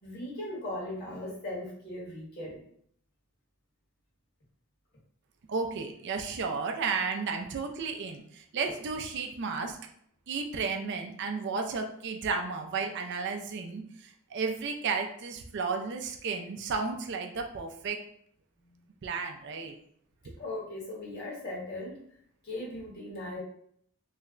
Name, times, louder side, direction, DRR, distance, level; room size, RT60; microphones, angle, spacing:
voice 1, 0.0-2.6 18.6-18.9 20.4-22.0 22.4-23.4, left 1 dB, 50° left, -6 dB, 1.5 m, -38 dB
voice 2, 5.5-9.8 10.3-18.0 19.0-19.7, right 4 dB, 55° right, 4 dB, 0.4 m, -33 dB
3.2 x 2.1 x 3.7 m, 0.66 s
head